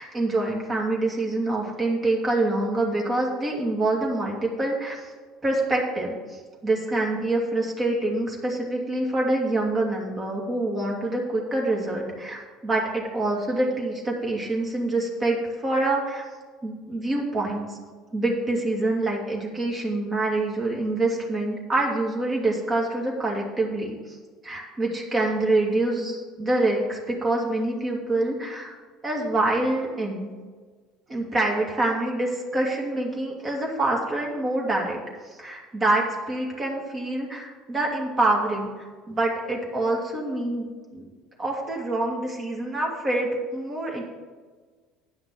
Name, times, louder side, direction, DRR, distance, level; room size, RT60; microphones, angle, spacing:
voice 1, 0.0-5.1 5.4-16.2 16.6-17.8 18.1-24.2 24.4-28.7 29.0-30.3 31.1-35.0 35.4-38.7 39.1-41.0 41.4-44.0, right 2 dB, 25° right, -2 dB, 2.5 m, -26 dB
9.7 x 5.8 x 7.7 m, 1.5 s
figure-of-eight pair, 65°, 0 cm